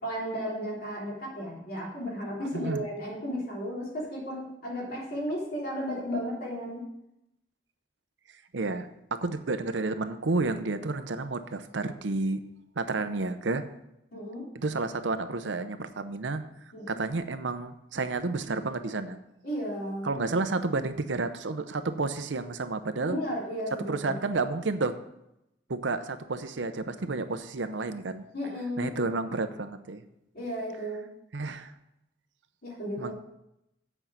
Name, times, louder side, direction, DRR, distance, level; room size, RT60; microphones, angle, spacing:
voice 1, 0.0-6.8 14.1-14.5 16.7-17.0 19.4-20.2 23.0-24.2 28.3-29.2 30.3-31.0 32.6-33.1, equal, 55° left, -4 dB, 3.6 m, -34 dB
voice 2, 2.5-2.8 8.5-12.4 12.8-13.6 14.5-16.4 16.9-19.2 20.0-23.2 23.9-24.9 25.7-28.2 28.8-30.0 31.3-31.7 33.0-33.1, right 3 dB, 75° right, 10 dB, 0.7 m, -31 dB
8.0 x 5.6 x 7.4 m, 0.85 s
head